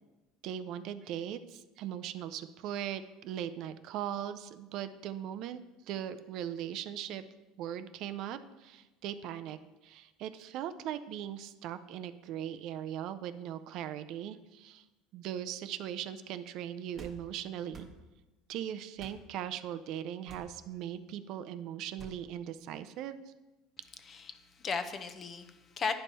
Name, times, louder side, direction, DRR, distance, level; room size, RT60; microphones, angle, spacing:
voice 1, 0.4-5.6 5.9-7.2 7.6-9.6 9.8-14.8 15.1-17.9 18.5-23.3, right 10 dB, 55° right, 11 dB, 0.4 m, -39 dB
sound 1, 16.9-17.2 17.7-17.9 19.0-19.2 20.3-20.5 22.0-22.2, right 2 dB, 25° right, 1.1 m, -49 dB
voice 2, 24.1-25.9, left 5 dB, 30° left, 9 dB, 0.6 m, -36 dB
9.9 x 5.3 x 4.2 m, 1.1 s
cardioid pair, 140°, 0 cm